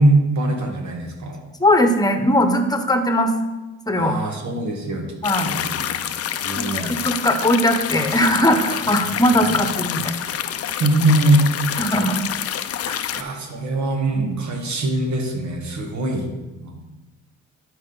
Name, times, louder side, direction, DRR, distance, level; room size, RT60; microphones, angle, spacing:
voice 1, 0.0-1.4 4.0-5.1 5.4-5.8 6.1-6.2 6.4-7.0 9.2-9.6 10.7-11.5 13.1-16.3 16.6-16.9, right 1 dB, 70° right, 2 dB, 1.7 m, -22 dB
voice 2, 1.6-3.3 3.9-4.1 5.2-5.5 6.6-10.0 11.8-12.2 12.8-13.2 14.1-14.3, left 1 dB, 15° left, 6 dB, 1.1 m, -19 dB
sound 1, 5.2-13.2, left 10 dB, 50° left, 0.6 m, -27 dB
12.0 x 5.1 x 4.0 m, 1.1 s
cardioid pair, 90°, 30 cm